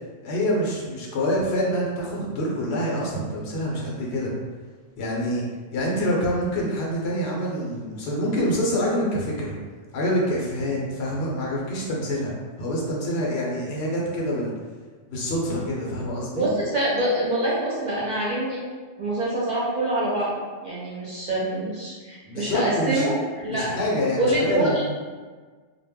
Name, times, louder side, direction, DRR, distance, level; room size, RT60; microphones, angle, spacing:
voice 1, 0.2-4.3 5.0-5.4 5.7-9.5 9.9-12.3 12.6-14.5 15.1-16.5 22.3-23.0 23.5-24.8, equal, 70° left, -3 dB, 0.9 m, -26 dB
voice 2, 16.4-18.6 19.0-20.3 20.6-23.7 24.2-24.8, right 1 dB, 50° right, -7 dB, 0.7 m, -25 dB
2.2 x 2.0 x 3.4 m, 1.4 s
omnidirectional pair, 1.1 m